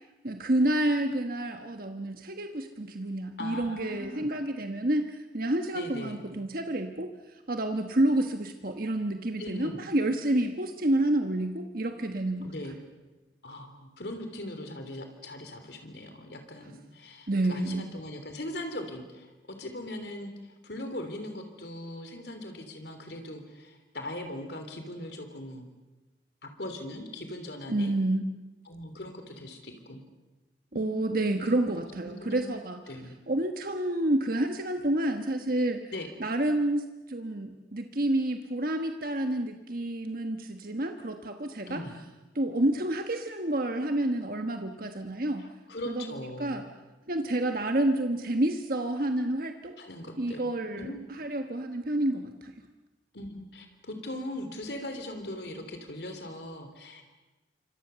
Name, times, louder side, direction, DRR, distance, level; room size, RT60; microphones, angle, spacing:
voice 1, 0.2-12.5 17.3-17.9 27.7-28.3 30.7-32.8 33.3-35.8 36.2-41.8 42.3-45.5 45.8-46.6 47.1-49.7 50.2-52.5, right 1 dB, 55° right, 5 dB, 1.3 m, -29 dB
voice 2, 3.4-4.3 5.7-6.2 9.4-9.8 12.4-12.8 13.4-19.3 19.6-25.7 26.4-27.9 28.6-30.0 30.7-31.0 31.8-32.5 32.9-33.2 35.9-36.1 41.7-41.9 45.4-46.6 49.8-50.5 50.8-51.0 53.1-57.0, left 1 dB, 65° left, 6 dB, 3.3 m, -40 dB
28.5 x 25.0 x 6.9 m, 1.2 s
head